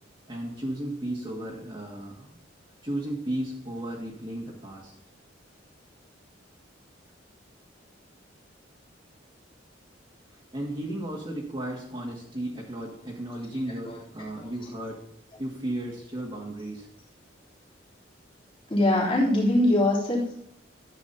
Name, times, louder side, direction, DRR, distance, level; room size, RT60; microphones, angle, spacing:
voice 1, 0.3-2.4 2.8-4.9 10.3-15.0 15.4-16.9, right 1 dB, 30° right, -5 dB, 2.0 m, -34 dB
voice 2, 18.7-20.4, left 1 dB, 30° left, -6 dB, 3.4 m, -22 dB
13.5 x 8.7 x 2.8 m, 0.79 s
head